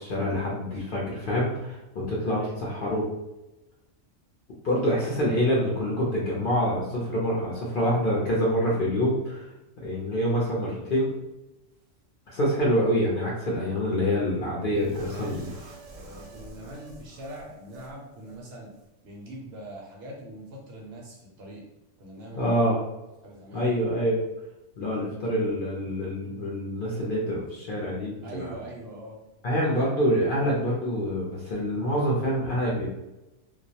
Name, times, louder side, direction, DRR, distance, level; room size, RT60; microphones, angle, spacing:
voice 1, 0.0-3.0 4.6-9.5 9.8-11.1 12.3-15.5 22.3-22.8 23.5-24.2 24.8-28.5 29.4-32.9, equal, 55° left, -4 dB, 0.6 m, -26 dB
voice 2, 2.3-3.2 14.6-15.6 15.9-18.7 19.0-21.6 22.0-22.7 23.2-23.8 28.2-29.2, right 1 dB, 65° right, -2 dB, 0.8 m, -42 dB
sound 1, 14.7-17.9 18.2-18.4 18.7-18.9, right 3 dB, 90° right, 1.0 m, -47 dB
2.3 x 2.0 x 2.7 m, 0.98 s
omnidirectional pair, 1.3 m